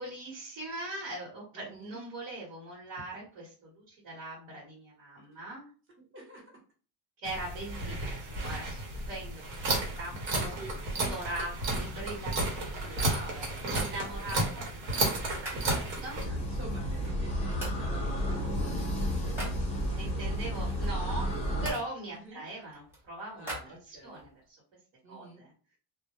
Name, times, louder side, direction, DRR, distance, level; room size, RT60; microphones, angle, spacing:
voice 1, 0.0-5.6 7.2-8.0 8.3-9.4 10.0-10.6 11.1-13.0 13.7-14.6 15.2-15.4 15.7-16.2 19.2-19.3 19.9-23.5 23.9-24.3 25.1-25.5, right 2 dB, 65° right, -5 dB, 1.1 m, -41 dB
voice 2, 1.5-2.0 5.3-5.4 6.0-6.4 7.8-8.1 10.4-10.8 12.7-14.6 16.0-20.0 22.1-22.4 23.3-24.3 25.0-25.4, right 1 dB, 25° right, -2 dB, 0.8 m, -49 dB
sound 1, 7.2-16.2, right 2 dB, 90° right, 1.0 m, -33 dB
sound 2, 13.7-14.0 14.4-16.2 16.6-17.3 17.6-17.8 18.2-19.6 20.4-21.9 22.4-24.3, right 1 dB, 5° right, 0.9 m, -43 dB
sound 3, 16.2-21.7, equal, 15° left, 0.4 m, -32 dB
2.1 x 2.1 x 2.9 m, 0.38 s
cardioid pair, 170°, 46 cm